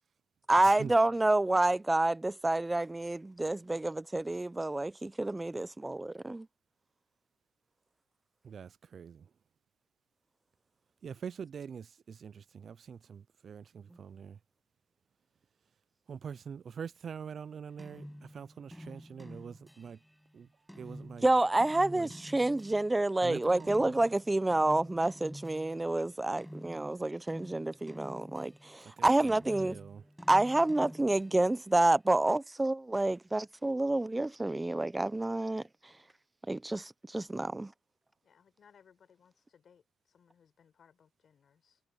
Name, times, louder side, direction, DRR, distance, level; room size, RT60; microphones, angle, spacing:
voice 1, 0.5-6.5 21.2-29.8 30.3-35.9 36.5-37.7, right 2 dB, 15° right, 0.8 m, -28 dB
voice 2, 8.5-9.2 11.0-14.4 16.1-18.0 18.3-20.0 20.3-20.5 20.8-21.2 21.9-22.1 23.2-23.9 29.0-29.1 29.6-30.0, right 7 dB, 50° right, 0.4 m, -44 dB
sound 1, 17.8-23.1 23.6-28.9 29.3-31.7, equal, ahead, 7.0 m, -49 dB
voice 3, 38.2-41.8, left 7 dB, 55° left, 4.8 m, -64 dB
cardioid pair, 90°, 0 cm